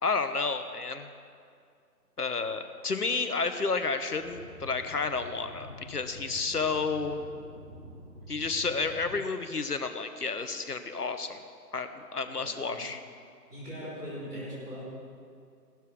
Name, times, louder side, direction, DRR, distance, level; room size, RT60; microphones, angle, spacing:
voice 1, 0.0-1.1 2.2-7.2 8.3-11.4 11.7-13.0, left 4 dB, 65° left, 9 dB, 1.1 m, -31 dB
sound 1, 4.2-9.1, equal, 40° right, 3.3 m, -47 dB
voice 2, 12.2-12.8 13.5-14.8, equal, 5° right, -16 dB, 1.6 m, -40 dB
16.5 x 12.0 x 3.6 m, 2.3 s
figure-of-eight pair, 165°, 50 cm